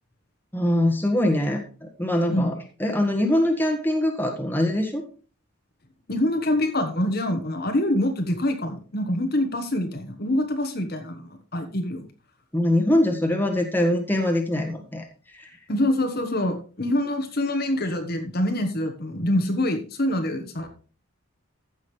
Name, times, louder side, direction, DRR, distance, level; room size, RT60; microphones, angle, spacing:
voice 1, 0.5-2.5 2.8-5.0 12.5-15.1 15.4-15.5, left 1 dB, 10° left, 2 dB, 1.6 m, -23 dB
voice 2, 6.1-12.1 15.7-20.7, left 1 dB, 45° left, 6 dB, 1.3 m, -25 dB
14.5 x 6.4 x 3.3 m, 0.37 s
head